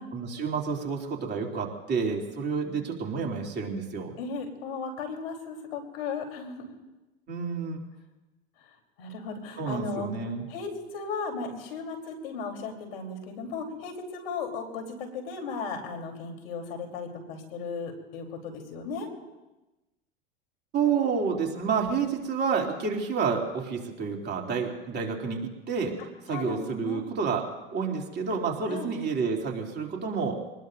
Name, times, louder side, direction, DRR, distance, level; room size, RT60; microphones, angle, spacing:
voice 1, 0.1-4.1 7.3-7.8 9.6-10.4 20.7-26.0 26.2-27.4 27.7-30.4, right 5 dB, 35° right, 0 dB, 3.0 m, -29 dB
voice 2, 4.2-6.6 9.0-10.1 10.5-19.1 26.3-27.0 28.7-28.9, left 4 dB, 75° left, 4 dB, 3.7 m, -36 dB
26.5 x 20.0 x 2.6 m, 1.0 s
hypercardioid pair, 105°, 29 cm